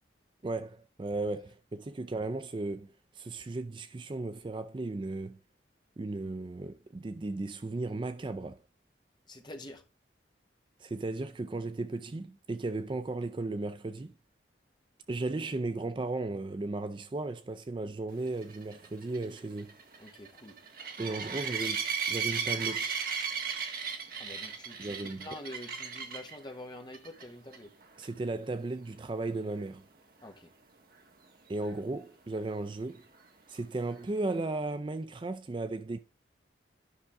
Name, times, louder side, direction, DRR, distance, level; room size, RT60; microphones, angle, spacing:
voice 1, 0.4-5.4 6.0-8.6 10.8-14.1 15.1-19.8 21.0-22.9 24.8-25.3 28.0-29.8 31.5-33.0 33.5-36.0, right 2 dB, 25° right, 0.3 m, -35 dB
voice 2, 9.3-9.8 20.0-20.6 21.0-21.3 24.2-27.7 30.2-30.5, left 1 dB, 25° left, 1.2 m, -46 dB
sound 1, 18.4-26.3 26.9-27.2 27.5-27.6 28.0-28.1 31.7-31.8, right 6 dB, 50° right, 1.4 m, -35 dB
10.0 x 5.8 x 3.5 m
head